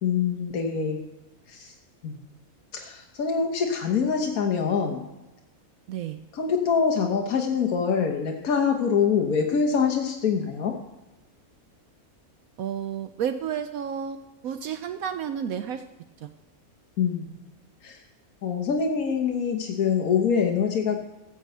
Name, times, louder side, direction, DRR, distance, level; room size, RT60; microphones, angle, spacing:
voice 1, 0.0-1.0 1.5-1.7 2.0-2.1 2.7-5.0 6.3-10.7 17.0-17.3 17.8-18.0 18.4-21.0, left 6 dB, 75° left, 2 dB, 1.6 m, -25 dB
voice 2, 12.6-14.2 14.4-15.8 16.2-16.3, right 8 dB, 75° right, 9 dB, 1.1 m, -31 dB
14.5 x 5.4 x 7.9 m, 1.0 s
omnidirectional pair, 1.5 m